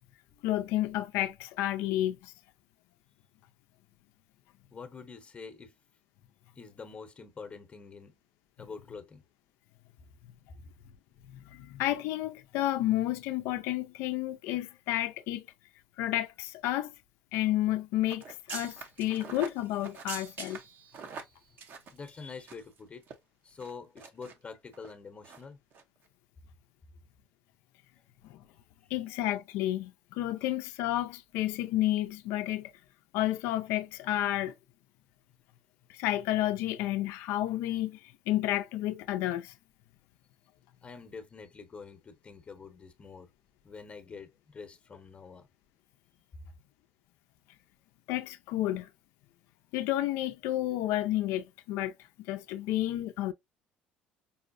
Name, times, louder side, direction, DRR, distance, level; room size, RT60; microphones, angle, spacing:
voice 1, 0.4-2.3 11.5-15.5 16.0-16.9 17.3-20.6 28.2-28.4 28.9-32.7 33.1-34.5 35.9-39.5 48.1-48.9 49.7-51.9 52.3-53.3, left 14 dB, 75° left, 0.4 m, -31 dB
voice 2, 4.7-5.7 6.6-8.2 8.6-9.2 21.9-23.0 23.4-25.6 28.8-28.9 40.8-43.3 43.6-45.5, left 5 dB, 30° left, 0.8 m, -46 dB
sound 1, 18.1-22.8 23.0-23.1 23.6-24.3 24.7-24.9 25.2-25.4 25.7-25.8, right 5 dB, 55° right, 0.8 m, -44 dB
5.4 x 2.0 x 2.5 m
supercardioid pair, 85°, 4 cm